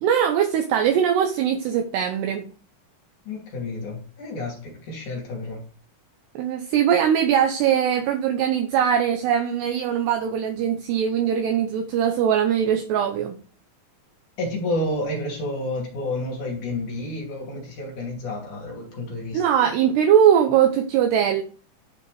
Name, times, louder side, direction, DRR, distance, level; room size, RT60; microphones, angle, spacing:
voice 1, 0.0-2.5 6.4-13.4 19.3-21.4, right 9 dB, 75° right, 2.7 m, -21 dB
voice 2, 3.3-5.6 14.4-19.4, left 1 dB, 45° left, 3.6 m, -30 dB
12.0 x 5.7 x 4.8 m
omnidirectional pair, 5.4 m